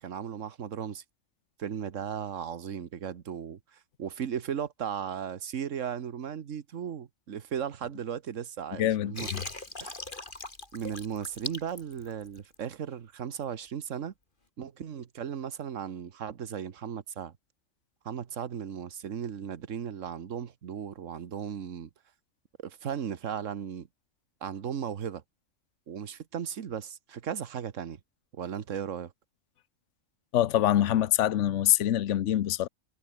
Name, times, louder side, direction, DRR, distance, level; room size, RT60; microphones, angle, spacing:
voice 1, 0.0-1.0 1.6-9.3 9.8-10.0 10.7-14.1 14.6-17.3 18.0-21.9 22.6-23.9 24.4-25.2 25.9-28.0 28.3-29.1, right 8 dB, 70° right, 1.5 m, -36 dB
voice 2, 8.8-9.4 30.3-32.7, left 12 dB, 65° left, 1.0 m, -25 dB
Water, 9.2-12.6, left 2 dB, 35° left, 3.8 m, -40 dB
omnidirectional pair, 1.4 m